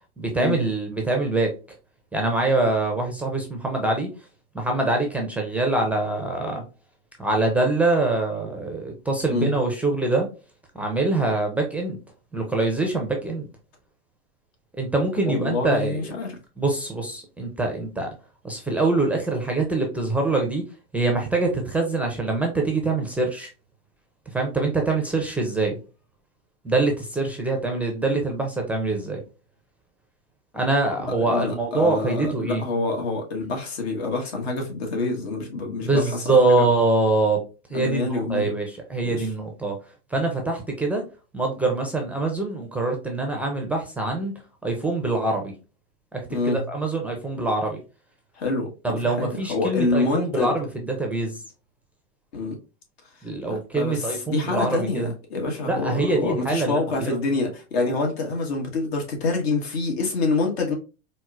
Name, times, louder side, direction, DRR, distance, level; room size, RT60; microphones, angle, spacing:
voice 1, 0.2-1.5 2.1-4.1 4.5-6.6 7.2-10.3 10.7-12.0 12.3-13.5 14.8-16.1 16.6-18.1 18.4-20.6 20.9-23.5 24.3-25.8 26.6-29.2 30.5-32.6 35.8-37.4 37.7-39.8 40.1-41.0 41.3-44.3 44.6-45.5 46.1-47.8 48.8-51.4 53.2-55.1 55.7-57.2, right 2 dB, 5° right, 0.4 m, -24 dB
voice 2, 15.3-16.4 31.2-36.6 37.7-38.5 39.0-39.3 46.3-46.6 48.3-50.5 52.3-52.6 53.5-60.7, left 3 dB, 75° left, 1.3 m, -26 dB
4.4 x 2.1 x 2.3 m
supercardioid pair, 130°, 32 cm